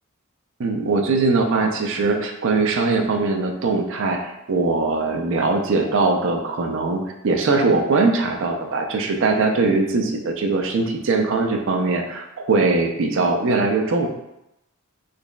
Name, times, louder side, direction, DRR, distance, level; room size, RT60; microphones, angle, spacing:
voice 1, 0.6-14.1, right 3 dB, 65° right, 4 dB, 0.5 m, -21 dB
3.9 x 3.0 x 2.2 m, 0.87 s
head